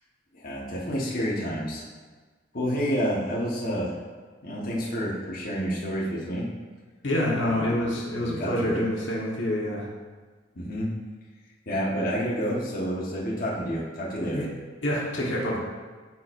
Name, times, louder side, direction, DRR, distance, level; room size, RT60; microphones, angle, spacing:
voice 1, 0.3-1.8 2.5-3.9 4.4-6.5 7.4-7.8 8.2-8.8 10.5-10.9 11.7-14.5, equal, 50° left, -5 dB, 1.3 m, -29 dB
voice 2, 7.0-9.9 14.3-14.5 14.8-15.6, left 1 dB, 80° left, -3 dB, 1.4 m, -27 dB
12.5 x 4.5 x 2.6 m, 1.4 s
head